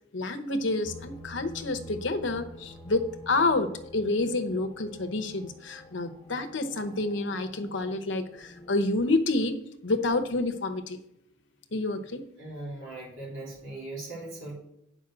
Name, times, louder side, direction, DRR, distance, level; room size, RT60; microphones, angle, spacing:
voice 1, 0.1-11.0 11.7-12.2, left 2 dB, 60° left, 9 dB, 0.8 m, -29 dB
sound 1, 0.8-8.7, equal, 25° left, 1.1 m, -47 dB
voice 2, 12.4-14.6, right 2 dB, 75° right, -6 dB, 3.3 m, -39 dB
8.6 x 5.2 x 6.1 m, 0.79 s
head